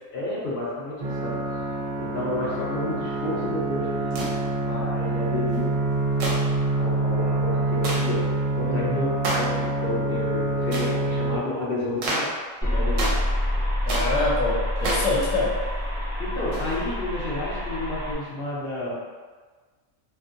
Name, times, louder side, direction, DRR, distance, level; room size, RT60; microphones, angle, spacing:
voice 1, 0.1-1.4 2.0-5.8 6.1-12.3 12.6-13.1 13.5-13.6 16.2-19.0, left 2 dB, 55° left, -6 dB, 0.7 m, -31 dB
sound 1, 1.0-11.4, right 2 dB, 60° right, 0.5 m, -26 dB
sound 2, 4.1-4.4 6.2-6.5 7.8-8.1 9.2-9.6 10.7-10.9 12.0-12.4 13.0-13.3 13.9-14.2 14.8-15.2 16.5-16.8, right 1 dB, 75° right, 0.9 m, -29 dB
sound 3, 12.6-18.1, left 1 dB, 5° left, 0.5 m, -27 dB
voice 2, 13.9-15.6, left 2 dB, 80° left, -3 dB, 1.0 m, -25 dB
2.5 x 2.5 x 2.5 m, 1.4 s
omnidirectional pair, 1.4 m